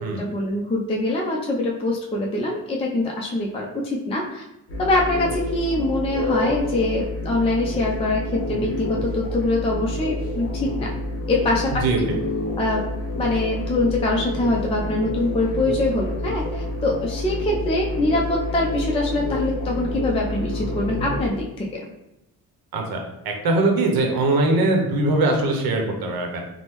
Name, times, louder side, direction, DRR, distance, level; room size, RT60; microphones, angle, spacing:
voice 1, 0.0-4.4 4.8-10.9 11.3-11.8 12.6-12.9 13.1-21.9, left 2 dB, 15° left, -2 dB, 0.4 m, -24 dB
sound 1, 4.7-21.3, left 1 dB, 35° left, 0.7 m, -28 dB
voice 2, 23.4-26.4, right 2 dB, 80° right, 2 dB, 0.7 m, -21 dB
3.4 x 2.1 x 2.9 m, 0.87 s
cardioid pair, 110°, 35 cm